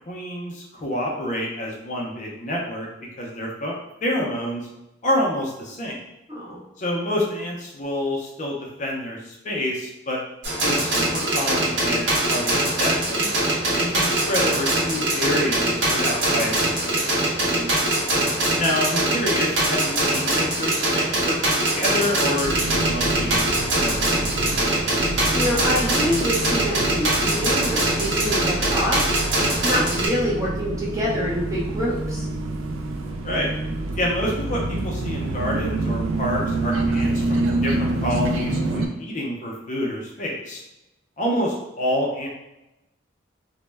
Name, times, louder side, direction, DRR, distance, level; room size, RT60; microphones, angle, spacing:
voice 1, 0.1-2.9 3.2-3.7 4.0-4.7 5.0-6.0 6.8-10.2 10.6-13.3 13.7-17.1 18.6-24.9 33.2-33.5 34.0-40.6 41.2-42.3, left 1 dB, 40° left, -2 dB, 0.4 m, -28 dB
voice 2, 6.3-6.6 17.5-18.3 25.3-29.0 29.2-29.3 29.6-32.3, equal, 15° right, -5 dB, 0.5 m, -26 dB
sound 1, 10.4-30.1, right 1 dB, 65° right, 0.7 m, -22 dB
sound 2, 22.4-38.9, right 2 dB, 85° right, 0.3 m, -27 dB
2.1 x 2.0 x 3.2 m, 0.91 s
head